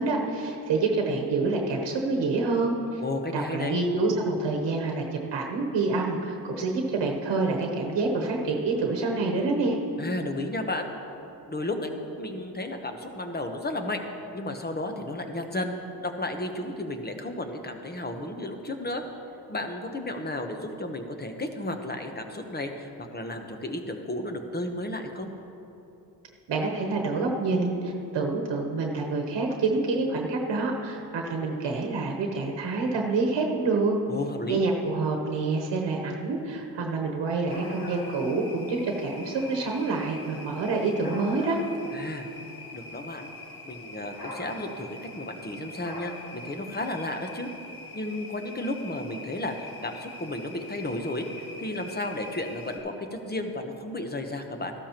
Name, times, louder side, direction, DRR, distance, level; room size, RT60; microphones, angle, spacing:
voice 1, 0.0-3.0 3.3-9.8 26.5-33.9 34.5-41.6, right 3 dB, 85° right, 1 dB, 1.1 m, -27 dB
voice 2, 3.0-3.8 10.0-10.9 11.5-14.0 14.3-19.0 19.5-25.3 34.1-34.6 41.9-42.3 42.7-43.3 43.6-47.5 47.9-54.7, left 1 dB, 25° left, 5 dB, 1.0 m, -33 dB
sound 1, 37.5-52.8, left 2 dB, 55° left, 1.9 m, -43 dB
14.0 x 12.5 x 3.0 m, 2.9 s
cardioid pair, 85°, 42 cm